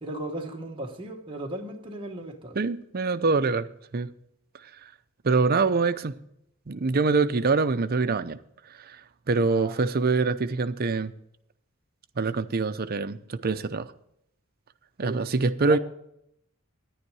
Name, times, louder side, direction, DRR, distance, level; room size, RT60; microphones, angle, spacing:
voice 1, 0.0-2.6 9.4-9.8 15.0-15.3 15.6-15.8, right 1 dB, 25° right, 1.3 m, -36 dB
voice 2, 2.5-3.7 3.9-4.1 5.2-6.2 6.7-8.4 8.8-9.0 9.3-11.1 12.2-13.9 15.0-15.8, right 4 dB, 45° right, 0.6 m, -24 dB
10.5 x 10.0 x 4.8 m
head